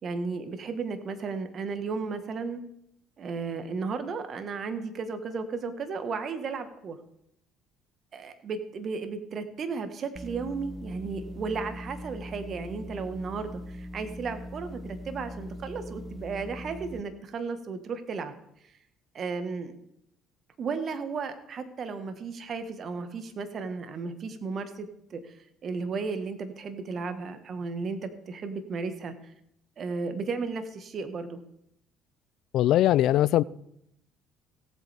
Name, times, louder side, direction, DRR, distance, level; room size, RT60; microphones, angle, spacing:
voice 1, 0.0-2.6 3.2-7.0 8.1-18.3 18.6-18.7 19.1-19.8 20.6-29.1 29.8-31.4, right 4 dB, 50° right, 1.5 m, -34 dB
sound 1, 10.1-17.0, equal, 15° right, 0.8 m, -41 dB
voice 2, 32.5-33.4, left 13 dB, 65° left, 0.3 m, -21 dB
17.5 x 8.0 x 3.5 m
hypercardioid pair, 60°, 0 cm